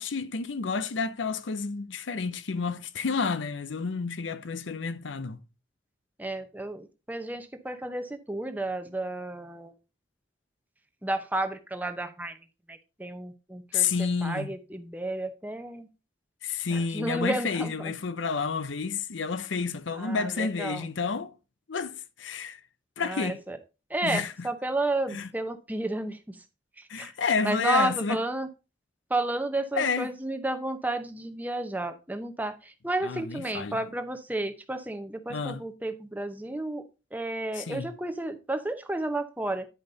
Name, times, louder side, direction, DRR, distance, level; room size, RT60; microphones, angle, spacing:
voice 1, 0.0-5.4 13.7-14.5 16.4-21.3 21.7-22.6 23.0-23.4 24.0-24.5 25.1-25.3 26.9-28.2 29.8-30.1 33.0-33.8 35.3-35.6 37.5-37.9, left 5 dB, 85° left, 0.7 m, -30 dB
voice 2, 6.2-9.7 11.0-12.4 12.7-15.9 16.7-17.9 20.0-20.8 23.0-23.6 23.9-26.4 26.8-27.1 27.4-28.5 29.1-36.8 37.1-39.7, right 2 dB, 10° right, 0.7 m, -32 dB
10.0 x 5.2 x 3.9 m
head